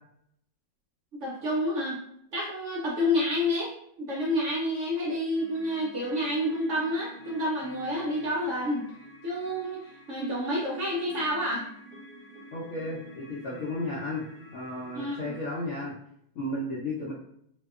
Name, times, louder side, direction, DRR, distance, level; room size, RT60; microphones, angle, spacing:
voice 1, 1.1-2.0 2.3-8.8 9.2-9.8 10.1-11.6 14.9-15.3, left 1 dB, 65° right, -4 dB, 0.7 m, -29 dB
sound 1, 5.3-15.7, equal, 45° right, 1.1 m, -49 dB
voice 2, 12.5-14.2 14.5-15.9 16.4-17.1, left 1 dB, 70° left, -6 dB, 0.8 m, -33 dB
2.7 x 2.1 x 2.3 m, 0.70 s
omnidirectional pair, 1.8 m